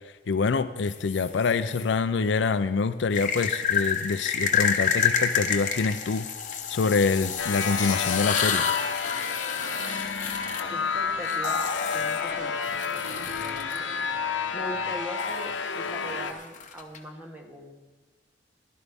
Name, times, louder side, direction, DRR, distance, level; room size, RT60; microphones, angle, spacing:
voice 1, 0.3-6.3 6.7-8.6, left 4 dB, 70° left, 13 dB, 0.5 m, -26 dB
sound 1, 0.9-1.8 3.1-13.8 15.2-17.0, left 7 dB, 45° left, 1.0 m, -29 dB
sound 2, 7.4-16.3, left 5 dB, 85° left, 0.9 m, -30 dB
voice 2, 10.7-14.1 14.5-17.8, equal, 10° right, 2 dB, 1.4 m, -41 dB
15.5 x 12.0 x 3.5 m, 1.3 s
head